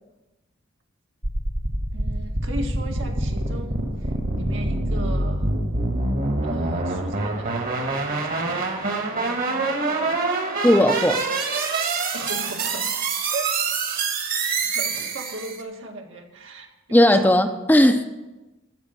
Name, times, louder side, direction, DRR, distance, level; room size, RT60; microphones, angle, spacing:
sound 1, 1.2-15.6, right 3 dB, 50° right, 1.6 m, -25 dB
voice 1, 1.9-5.5 6.4-7.8 8.1-8.7 9.1-10.2 12.1-12.9 13.3-13.5 13.8-14.1 14.6-17.4, right 2 dB, 75° right, 2 dB, 1.9 m, -37 dB
voice 2, 10.6-11.2 16.9-18.0, left 1 dB, 10° left, 7 dB, 0.6 m, -16 dB
14.5 x 5.0 x 9.3 m, 1.1 s
head